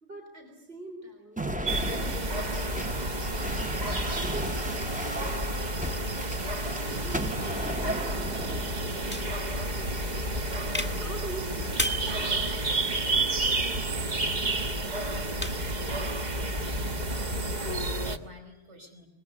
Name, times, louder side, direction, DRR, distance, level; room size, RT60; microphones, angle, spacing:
voice 1, 0.0-1.4 1.7-6.2 6.8-14.7, right 2 dB, 55° right, 3 dB, 4.3 m, -46 dB
sound 1, 1.4-10.7 11.4-11.9 13.0-13.7, right 1 dB, 10° right, 0.8 m, -37 dB
sound 2, 1.7-18.2, right 1 dB, 40° right, 1.3 m, -30 dB
sound 3, 9.1-16.7, left 1 dB, 10° left, 1.8 m, -40 dB
voice 2, 16.8-19.1, right 1 dB, 75° right, 3 dB, 5.4 m, -48 dB
25.0 x 21.0 x 9.8 m, 0.78 s
omnidirectional pair, 1.2 m